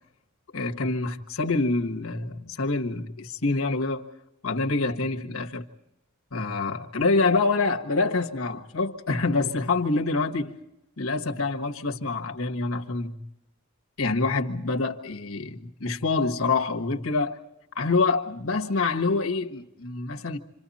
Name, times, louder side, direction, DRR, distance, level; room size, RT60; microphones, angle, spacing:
voice 1, 0.5-4.1 4.4-5.6 6.3-10.6 11.0-13.2 14.0-17.4 17.7-20.4, left 3 dB, 85° left, 1.5 m, -26 dB
28.0 x 26.5 x 4.2 m
head